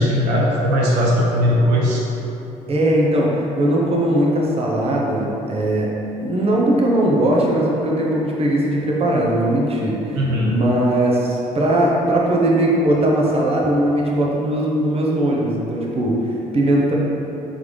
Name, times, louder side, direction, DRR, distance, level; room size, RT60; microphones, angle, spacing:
voice 1, 0.0-2.0 10.2-10.5, equal, 80° right, -4 dB, 0.6 m, -18 dB
voice 2, 2.7-5.9 6.2-16.9, right 1 dB, 35° right, -3 dB, 0.8 m, -19 dB
3.9 x 3.3 x 3.2 m, 3.0 s
hypercardioid pair, 60°, 17 cm